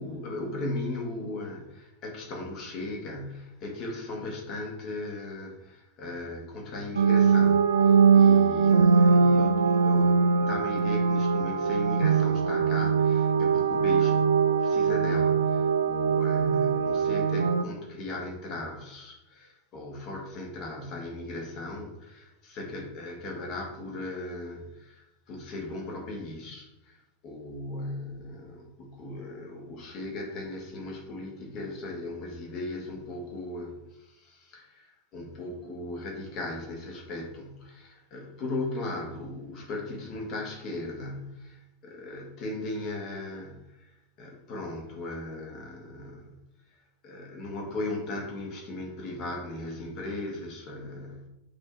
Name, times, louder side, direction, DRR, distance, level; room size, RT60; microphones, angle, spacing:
voice 1, 0.0-14.1 14.6-27.0 27.2-46.4 47.0-51.3, left 2 dB, 35° left, 0 dB, 1.9 m, -37 dB
sound 1, 6.9-17.6, right 5 dB, 70° right, 0.3 m, -22 dB
8.8 x 3.7 x 4.5 m, 0.93 s
figure-of-eight pair, 90°, 0 cm